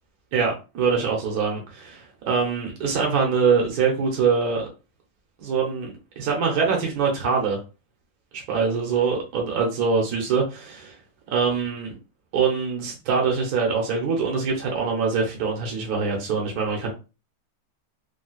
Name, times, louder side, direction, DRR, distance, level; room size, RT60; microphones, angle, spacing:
voice 1, 0.3-4.7 5.4-7.6 8.3-11.0 11.3-11.9 12.3-16.9, right 5 dB, 65° right, 0 dB, 1.3 m, -24 dB
3.8 x 2.3 x 2.4 m, 0.30 s
omnidirectional pair, 1.8 m